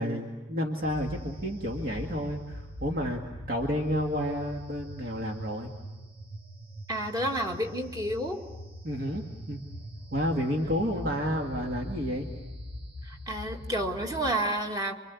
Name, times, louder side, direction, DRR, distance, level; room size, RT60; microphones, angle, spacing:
voice 1, 0.0-3.2 3.5-5.7 8.8-9.6 10.1-12.3, equal, 45° right, 1 dB, 2.0 m, -30 dB
sound 1, 0.8-14.3, equal, 70° right, 2.2 m, -42 dB
voice 2, 6.9-8.4 13.0-14.9, right 1 dB, 20° right, 2 dB, 2.0 m, -30 dB
28.0 x 24.5 x 8.4 m, 1.2 s
head